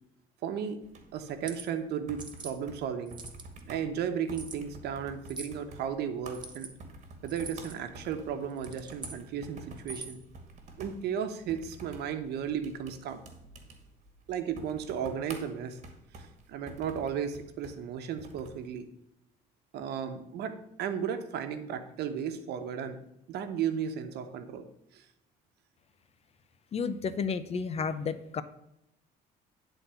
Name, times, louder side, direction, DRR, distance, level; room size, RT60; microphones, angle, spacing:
voice 1, 0.4-0.8 1.1-3.2 3.7-6.7 7.2-10.2 10.8-13.2 14.3-15.8 16.2-18.9 19.7-23.0 23.3-24.6 24.9-25.0, right 8 dB, 75° right, 8 dB, 1.0 m, -34 dB
sound 1, 0.8-18.6, right 2 dB, 45° right, 1.9 m, -50 dB
sound 2, 1.3-1.7 2.2-2.5 3.1-3.6 4.3-4.6 5.3-5.6 6.3-6.7 7.3-7.8 8.5-9.2 9.8-10.2, right 3 dB, 25° right, 1.2 m, -43 dB
voice 2, 26.7-28.4, left 5 dB, 35° left, 13 dB, 0.6 m, -32 dB
10.5 x 4.1 x 6.8 m, 0.82 s
cardioid pair, 110°, 17 cm